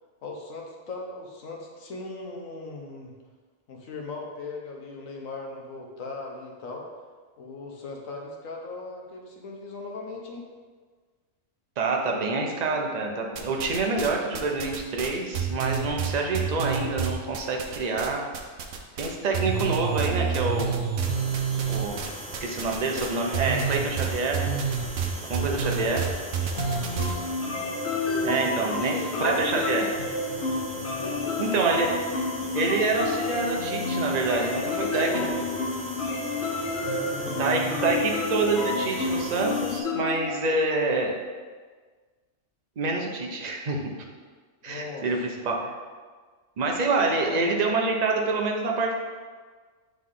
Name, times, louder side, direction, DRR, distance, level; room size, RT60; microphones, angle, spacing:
voice 1, 0.2-3.1 3.7-6.9 7.4-10.5 25.3-26.1 26.8-27.3 28.1-30.0 30.9-31.9 36.7-37.8 44.7-45.4 47.0-47.4, left 3 dB, 85° left, 0 dB, 1.3 m, -39 dB
voice 2, 11.8-18.2 19.0-20.8 21.7-22.0 22.4-24.5 25.3-26.0 28.2-29.9 31.4-31.9 32.5-35.3 37.2-41.1 42.8-43.9 44.6-45.7 46.6-48.9, right 3 dB, 40° right, 0 dB, 0.8 m, -26 dB
sound 1, 13.4-14.1 14.3-18.1 18.3-19.1 19.3-27.1, right 7 dB, 75° right, 1.0 m, -28 dB
sound 2, 21.0-39.8, right 1 dB, 10° right, 0.5 m, -39 dB
sound 3, 26.6-40.3, left 3 dB, 65° left, 1.0 m, -30 dB
8.0 x 3.8 x 3.7 m, 1.5 s
omnidirectional pair, 1.3 m